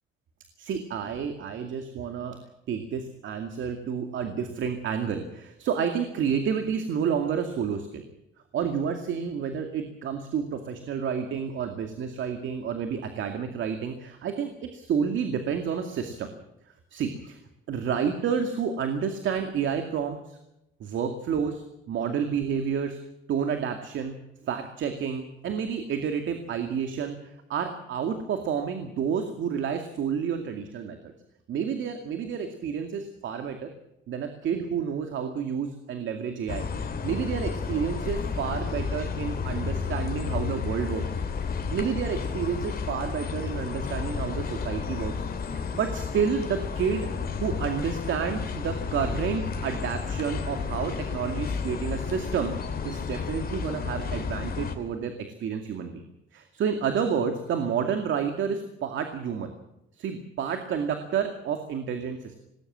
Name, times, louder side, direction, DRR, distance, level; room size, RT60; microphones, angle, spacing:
voice 1, 0.6-2.4 2.7-8.0 8.5-16.3 16.9-17.4 17.7-20.4 20.8-23.0 23.3-24.2 24.4-31.1 31.5-33.7 34.1-36.7 37.0-41.2 41.7-45.1 45.5-47.1 47.4-52.5 52.8-56.0 56.3-59.5 59.9-62.4, right 7 dB, 75° right, 6 dB, 2.3 m, -30 dB
sound 1, 36.5-54.7, left 5 dB, 50° left, 3.0 m, -32 dB
19.5 x 18.5 x 7.5 m, 0.86 s
cardioid pair, 90°, 20 cm